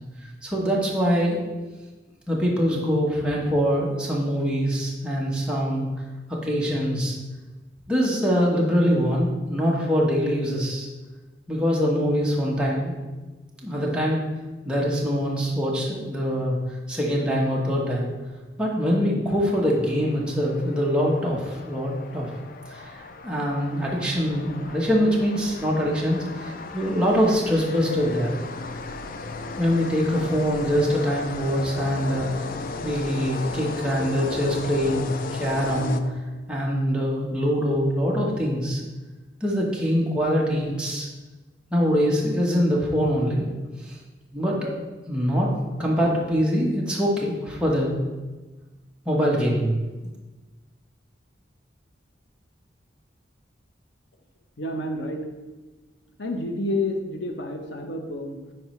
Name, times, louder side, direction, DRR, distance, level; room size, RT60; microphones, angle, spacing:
voice 1, 0.4-1.4 2.3-5.9 6.3-7.2 7.9-10.9 11.5-13.0 13.6-14.2 14.6-16.6 16.9-18.1 18.6-22.3 22.7-28.3 29.6-32.3 32.8-36.0 36.5-38.8 39.4-41.1 41.7-43.5 43.8-44.0 44.3-44.7 45.1-45.5 45.8-48.0 49.0-49.7, equal, 5° right, -4 dB, 1.0 m, -23 dB
sound 1, 19.7-36.5, left 3 dB, 50° left, 0.4 m, -36 dB
voice 2, 54.6-55.2 56.2-58.5, left 1 dB, 85° left, 3 dB, 0.9 m, -29 dB
9.3 x 4.6 x 3.1 m, 1.2 s
head